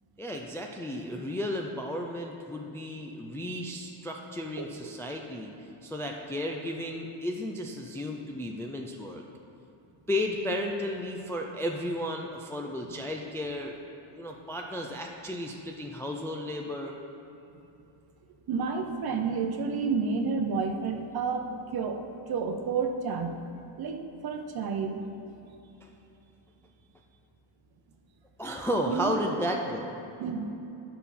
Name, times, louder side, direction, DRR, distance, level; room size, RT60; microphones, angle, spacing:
voice 1, 0.2-5.5 5.8-9.2 10.1-13.8 14.1-17.0 25.8-25.9 28.4-30.0, left 1 dB, 5° left, 1 dB, 0.3 m, -33 dB
voice 2, 18.5-23.4 23.8-25.0 28.9-29.2 30.2-30.5, right 5 dB, 50° right, 5 dB, 0.8 m, -30 dB
10.5 x 5.6 x 4.2 m, 2.9 s
cardioid pair, 140°, 49 cm